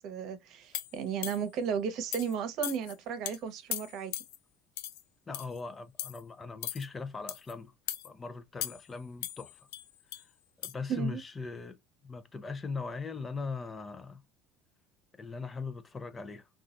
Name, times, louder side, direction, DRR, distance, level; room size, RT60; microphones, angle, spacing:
voice 1, 0.0-4.1 10.9-11.2, right 7 dB, 60° right, 0.8 m, -34 dB
sound 1, 0.7-1.6 2.1-2.3 2.6-2.9 3.2-3.4 3.7-4.4 4.8-5.0 5.3-5.6 6.0-6.2 6.6-6.9 7.3-7.5 7.9-8.1 8.6-8.9 9.2-10.2 10.6-10.7, left 13 dB, 85° left, 0.4 m, -38 dB
voice 2, 5.3-7.7 8.0-9.7 10.6-11.8 12.0-14.2 15.2-16.5, left 4 dB, 25° left, 0.5 m, -40 dB
3.9 x 2.4 x 2.4 m
supercardioid pair, 110°, 0 cm